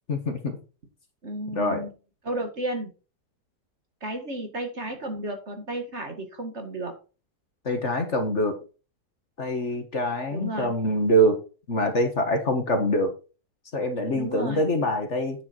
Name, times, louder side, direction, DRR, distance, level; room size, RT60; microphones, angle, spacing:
voice 1, 0.1-0.6 1.5-1.8 7.7-8.5 9.4-11.4 11.7-13.1 13.7-15.5, equal, 45° left, 6 dB, 1.8 m, -24 dB
voice 2, 1.2-1.9 2.2-2.9 4.0-6.9 10.3-10.7 14.1-14.7, right 1 dB, 45° right, 5 dB, 2.1 m, -33 dB
9.2 x 7.4 x 4.4 m, 0.34 s
omnidirectional pair, 1.7 m